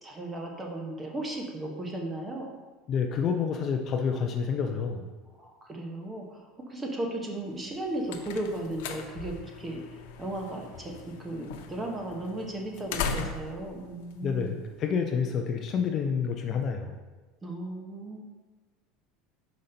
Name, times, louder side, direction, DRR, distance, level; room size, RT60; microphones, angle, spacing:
voice 1, 0.0-2.5 5.3-9.8 10.2-14.6 17.4-18.2, right 1 dB, 15° right, 1 dB, 0.9 m, -36 dB
voice 2, 2.9-5.1 14.2-16.9, left 6 dB, 35° left, 4 dB, 0.5 m, -28 dB
sound 1, 7.6-15.1, left 5 dB, 80° left, 0.6 m, -39 dB
5.2 x 5.2 x 4.2 m, 1.3 s
supercardioid pair, 155°, 0 cm